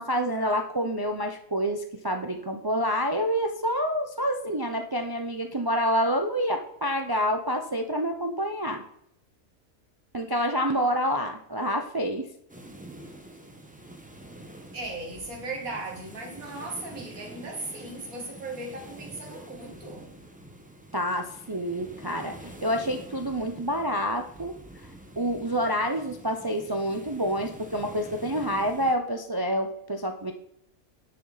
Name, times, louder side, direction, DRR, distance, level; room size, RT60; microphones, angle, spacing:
voice 1, 0.0-8.8 10.1-12.3 20.9-24.5 24.8-30.3, equal, 25° right, 0.5 m, -28 dB
sound 1, 12.5-29.0, right 1 dB, 5° right, 1.0 m, -46 dB
voice 2, 14.7-20.1, right 2 dB, 85° right, 2.6 m, -37 dB
10.0 x 6.6 x 4.1 m
omnidirectional pair, 1.5 m